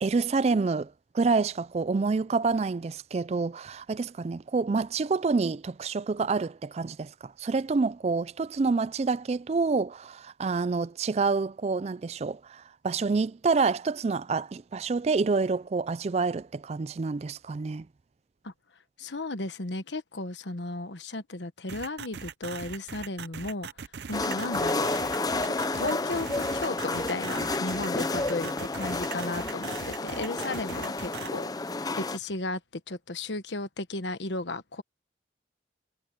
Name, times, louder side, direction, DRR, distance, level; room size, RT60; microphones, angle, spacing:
voice 1, 0.0-17.9, right 4 dB, 35° right, 0.4 m, -28 dB
voice 2, 19.0-23.7 24.1-24.9 25.4-29.8 30.0-31.5 32.0-34.8, left 2 dB, 85° left, 1.3 m, -35 dB
sound 1, 21.7-31.3, right 6 dB, 70° right, 0.7 m, -40 dB
sound 2, 24.1-32.2, left 3 dB, 20° left, 0.6 m, -31 dB
head